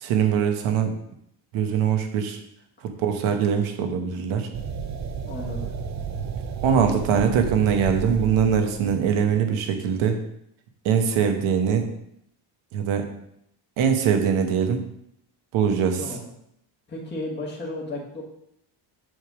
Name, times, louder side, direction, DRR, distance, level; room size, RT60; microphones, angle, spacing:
voice 1, 0.0-0.9 1.5-2.4 3.0-4.5 6.6-10.2 10.8-11.9 12.7-13.1 13.8-14.8 15.5-16.0, right 7 dB, 85° right, 5 dB, 1.1 m, -22 dB
sound 1, 4.5-9.6, right 5 dB, 35° right, 0.6 m, -32 dB
voice 2, 5.3-5.7 16.0-16.3 16.9-18.2, left 2 dB, 20° left, -3 dB, 1.5 m, -33 dB
7.8 x 3.4 x 6.1 m, 0.75 s
cardioid pair, 155°, 48 cm